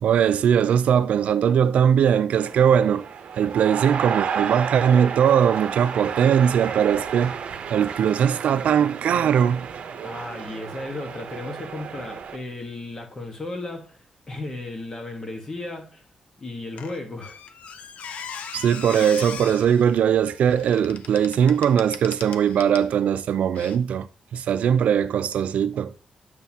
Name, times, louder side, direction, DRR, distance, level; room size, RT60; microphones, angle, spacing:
voice 1, 0.0-3.1 3.4-7.4 7.7-9.7 18.5-25.9, right 8 dB, 85° right, 0.4 m, -20 dB
sound 1, 2.4-12.4, right 7 dB, 70° right, 0.8 m, -32 dB
voice 2, 10.0-14.0 14.3-16.0 16.4-17.4, left 2 dB, 25° left, 1.4 m, -35 dB
Squeak, 16.8-22.9 23.5-23.8, left 7 dB, 80° left, 0.6 m, -39 dB
9.1 x 6.7 x 2.8 m
wide cardioid pair, 155°, 2 cm